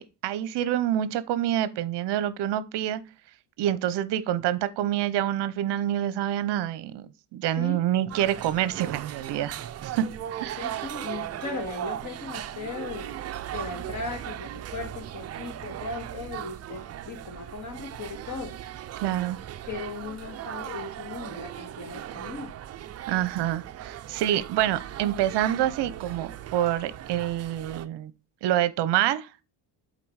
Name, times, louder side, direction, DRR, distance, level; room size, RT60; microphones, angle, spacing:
voice 1, 0.0-3.0 3.6-10.1 10.4-10.7 19.0-19.4 23.1-28.1 28.4-29.4, right 12 dB, 60° right, 0.8 m, -27 dB
sound 1, 8.1-27.9, right 11 dB, 35° right, 0.5 m, -38 dB
voice 2, 10.6-13.1 13.5-18.6 19.7-22.5, left 4 dB, 35° left, 2.1 m, -37 dB
7.6 x 4.1 x 4.8 m
cardioid pair, 125°, 48 cm